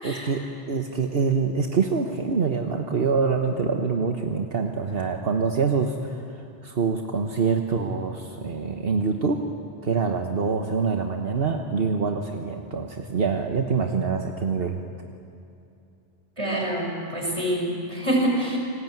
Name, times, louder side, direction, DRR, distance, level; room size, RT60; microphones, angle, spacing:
voice 1, 0.0-9.4 9.8-14.8, right 5 dB, 65° right, 4 dB, 1.5 m, -25 dB
voice 2, 16.4-18.6, right 1 dB, 30° right, -1 dB, 6.5 m, -26 dB
29.0 x 19.5 x 9.3 m, 2.7 s
omnidirectional pair, 1.1 m